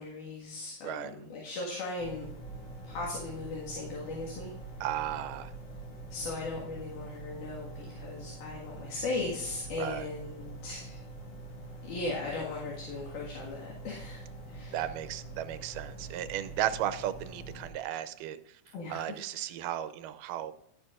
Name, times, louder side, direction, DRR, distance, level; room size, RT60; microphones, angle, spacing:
voice 1, 0.0-2.3 2.9-4.5 6.1-11.0 11.8-14.2 14.5-14.8 18.7-19.0, left 3 dB, 75° left, -3 dB, 3.2 m, -38 dB
sound 1, 2.0-17.7, right 2 dB, 50° left, 3.0 m, -45 dB
voice 2, 4.8-5.5 9.8-10.1 14.7-18.4 18.9-20.5, right 12 dB, 85° right, 12 dB, 2.2 m, -35 dB
11.5 x 9.3 x 2.5 m, 0.75 s
omnidirectional pair, 3.7 m